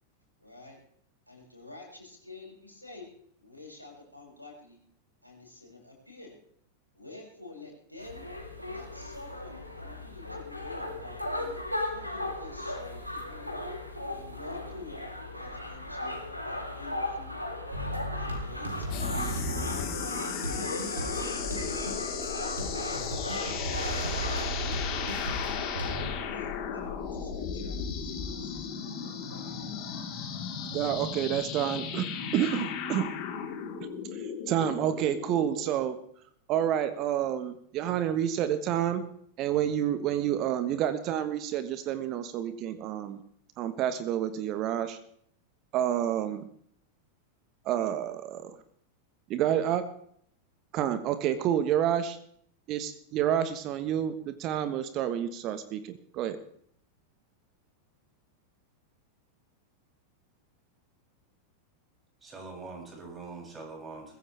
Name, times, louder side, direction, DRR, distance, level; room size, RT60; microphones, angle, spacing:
voice 1, 0.4-0.8 1.3-3.1 3.4-4.8 5.2-6.3 6.9-8.2 8.7-13.5 14.1-15.0 15.3-16.2 16.4-17.4 18.1-19.0 19.5-19.9 20.3-22.1 24.2-25.2 25.7-26.0 26.3-30.1, left 3 dB, 90° left, -2 dB, 7.2 m, -49 dB
sound 1, 8.0-24.5, left 1 dB, 90° right, 3.2 m, -37 dB
sound 2, 17.7-26.1, right 2 dB, 75° right, 3.9 m, -36 dB
sound 3, 18.9-35.7, left 7 dB, 40° left, 3.9 m, -35 dB
voice 2, 30.7-33.1 34.1-36.0 36.5-39.0 39.4-43.2 43.6-45.0 45.7-46.5 47.6-48.6 49.3-49.9 50.7-52.2 52.7-56.4, right 10 dB, 35° right, 12 dB, 1.4 m, -29 dB
voice 3, 62.2-64.2, right 3 dB, 20° right, 0 dB, 7.5 m, -43 dB
22.5 x 16.0 x 3.5 m, 0.64 s
figure-of-eight pair, 90°, 0 cm